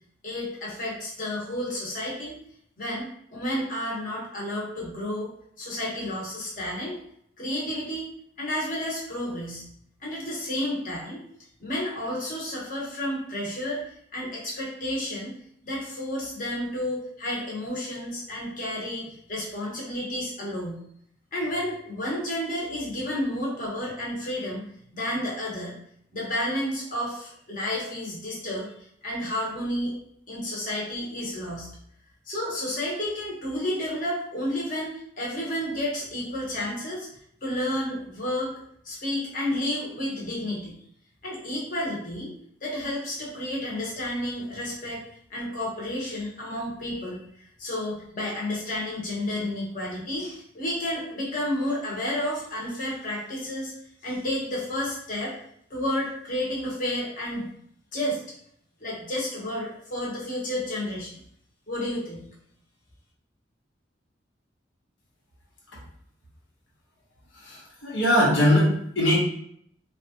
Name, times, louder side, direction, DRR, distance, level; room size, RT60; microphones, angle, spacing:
voice 1, 0.2-2.4 2.8-5.3 5.6-7.0 7.4-8.1 8.4-9.7 10.0-11.2 11.6-15.3 15.6-20.8 21.3-24.6 24.9-25.7 26.1-28.7 29.0-30.0 30.3-31.7 32.3-37.1 37.4-38.6 38.8-40.7 41.2-42.3 42.6-45.0 45.3-53.7 54.0-55.4 55.7-57.5 57.9-58.2 58.8-61.1 61.7-62.3, left 1 dB, 45° left, -5 dB, 1.1 m, -31 dB
voice 2, 67.4-69.2, equal, 90° left, -5 dB, 1.2 m, -21 dB
3.2 x 2.3 x 2.8 m, 0.69 s
head